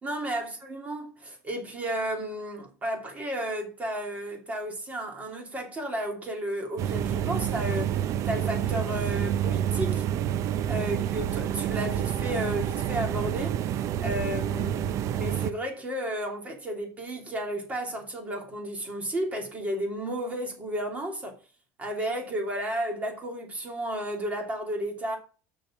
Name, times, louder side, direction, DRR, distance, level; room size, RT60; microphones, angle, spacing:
voice 1, 0.0-10.1 10.7-13.6 14.0-21.4 21.8-25.2, right 1 dB, 20° right, 2.8 m, -33 dB
sound 1, 6.8-15.5, right 10 dB, 45° right, 0.6 m, -28 dB
6.6 x 6.3 x 7.3 m
cardioid pair, 160°, 7 cm